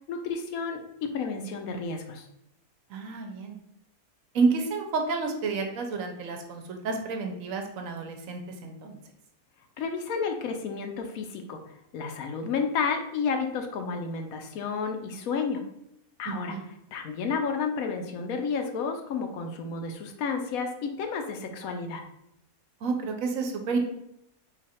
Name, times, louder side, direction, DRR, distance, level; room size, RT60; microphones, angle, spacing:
voice 1, 0.1-2.3 9.8-15.6 16.2-16.5 16.9-22.0, left 5 dB, 75° left, 5 dB, 1.0 m, -31 dB
voice 2, 2.9-3.6 4.3-9.0 16.3-16.7 22.8-23.8, right 4 dB, 70° right, 4 dB, 1.0 m, -30 dB
4.0 x 2.4 x 4.1 m, 0.80 s
omnidirectional pair, 1.5 m